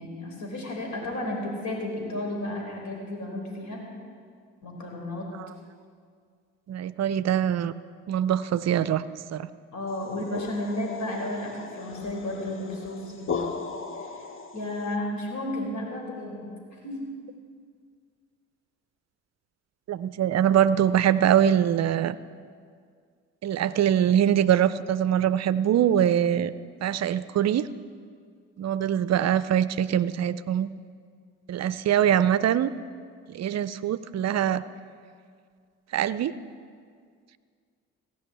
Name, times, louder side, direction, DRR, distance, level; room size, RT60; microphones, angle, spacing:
voice 1, 0.0-3.8 4.6-5.3 9.7-13.5 14.1-14.3 14.5-16.5 16.8-17.1, left 1 dB, 50° left, 0 dB, 4.3 m, -33 dB
voice 2, 6.7-7.7 8.1-9.0 9.3-9.5 19.9-22.2 23.4-26.5 26.8-27.7 28.6-30.7 31.5-32.7 33.3-34.6 35.9-36.3, right 10 dB, 45° right, 16 dB, 0.6 m, -23 dB
sound 1, 9.9-14.9, left 5 dB, 35° left, 1.1 m, -37 dB
16.0 x 6.3 x 8.4 m, 2.1 s
hypercardioid pair, 50°, 36 cm